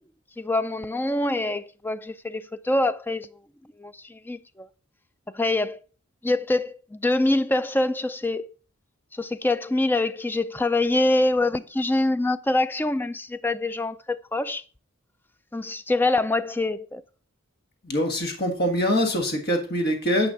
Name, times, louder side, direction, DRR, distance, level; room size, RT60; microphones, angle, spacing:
voice 1, 0.4-3.4 3.8-4.7 5.3-5.8 6.2-8.5 9.1-14.6 15.5-17.0, left 2 dB, 10° left, 0.3 m, -25 dB
voice 2, 17.8-20.3, equal, 50° left, 1.6 m, -24 dB
9.2 x 5.4 x 5.7 m
head